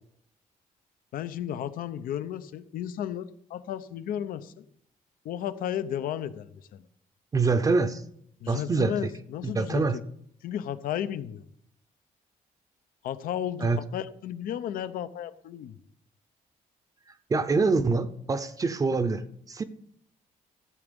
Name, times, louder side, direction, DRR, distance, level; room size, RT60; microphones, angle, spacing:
voice 1, 1.1-4.6 5.2-6.9 8.4-9.8 10.4-11.4 13.0-15.7, left 10 dB, 80° left, 0.8 m, -34 dB
voice 2, 7.3-8.0 8.5-9.1 9.4-10.0 13.6-13.8 17.3-19.6, right 4 dB, 25° right, 0.7 m, -25 dB
14.0 x 8.1 x 5.3 m
cardioid pair, 145°, 14 cm